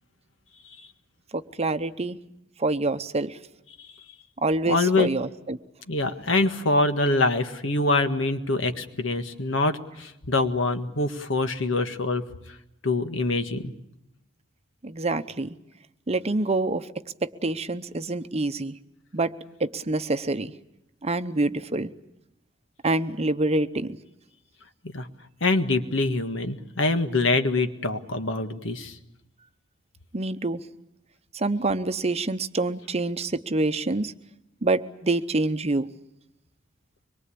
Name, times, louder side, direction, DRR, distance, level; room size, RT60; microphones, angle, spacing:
voice 1, 1.3-2.2 2.6-3.4 4.4-5.6 14.8-15.6 16.1-16.9 17.2-18.8 19.1-19.3 19.6-20.5 21.0-21.9 22.8-24.0 30.1-30.6 31.3-34.1 34.6-35.9, right 2 dB, 30° right, 10 dB, 0.8 m, -26 dB
voice 2, 4.7-5.1 5.9-12.2 12.8-13.7 24.8-25.1 25.4-29.0, left 2 dB, 70° left, 8 dB, 1.7 m, -24 dB
24.5 x 22.5 x 8.6 m, 0.86 s
head